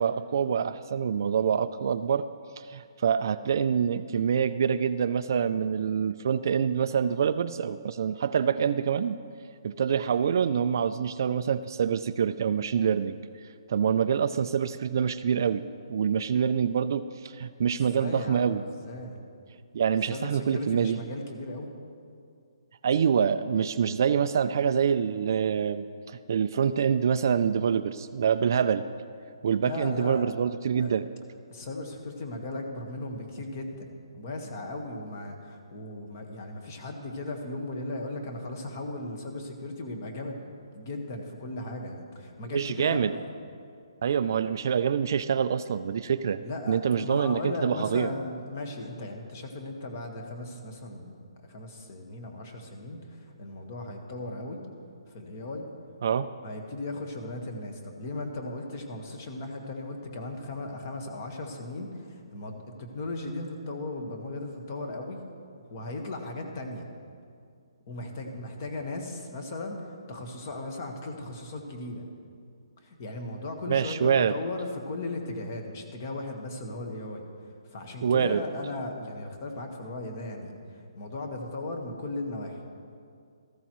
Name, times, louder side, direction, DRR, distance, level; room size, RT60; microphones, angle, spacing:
voice 1, 0.0-2.3 2.6-9.2 9.6-13.2 13.7-15.6 15.9-18.6 19.7-21.0 22.8-28.8 29.4-31.1 42.5-43.1 44.0-48.1 56.0-56.3 73.7-74.4 78.0-78.4, right 7 dB, 40° right, 12 dB, 0.3 m, -26 dB
voice 2, 17.9-19.2 20.1-21.7 29.5-30.2 30.8-30.9 31.5-43.3 46.4-51.1 51.5-54.6 55.1-55.7 56.1-65.2 65.7-66.8 67.9-72.0 72.8-77.2 77.7-80.5 80.9-82.7, left 2 dB, 30° left, 3 dB, 1.4 m, -37 dB
16.5 x 14.5 x 3.1 m, 2.3 s
hypercardioid pair, 175°, 3 cm